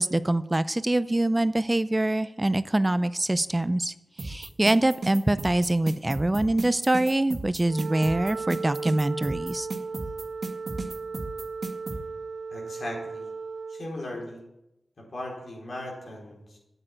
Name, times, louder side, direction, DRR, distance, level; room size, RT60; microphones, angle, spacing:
voice 1, 0.0-9.7, right 1 dB, 20° right, 14 dB, 0.5 m, -24 dB
sound 1, 4.2-12.0, right 3 dB, 55° right, 1.8 m, -34 dB
Wind instrument woodwind instrument, 7.6-13.9, right 4 dB, 85° right, 0.5 m, -36 dB
voice 2, 12.5-13.3 13.7-14.4 15.0-16.6, left 1 dB, 65° left, -1 dB, 4.3 m, -37 dB
9.0 x 8.3 x 8.8 m, 0.91 s
cardioid pair, 55°, 0 cm